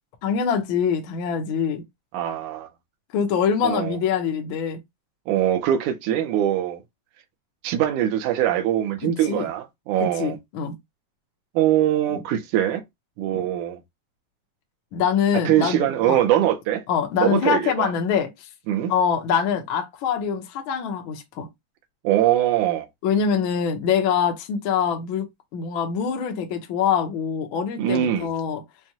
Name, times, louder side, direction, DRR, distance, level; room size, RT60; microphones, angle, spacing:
voice 1, 0.2-1.8 3.1-4.8 9.0-9.5 10.0-10.7 12.1-12.2 13.3-13.4 14.9-16.2 16.9-18.5 18.9-21.5 23.0-25.3 25.5-28.6, left 7 dB, 75° left, 1.1 m, -24 dB
voice 2, 2.1-2.7 3.6-4.0 5.3-6.8 7.6-10.4 11.6-12.8 13.2-13.8 15.5-16.8 17.2-17.9 18.7-18.9 22.0-22.9 27.8-28.3, right 11 dB, 80° right, 2.2 m, -22 dB
6.0 x 2.2 x 2.8 m
omnidirectional pair, 3.6 m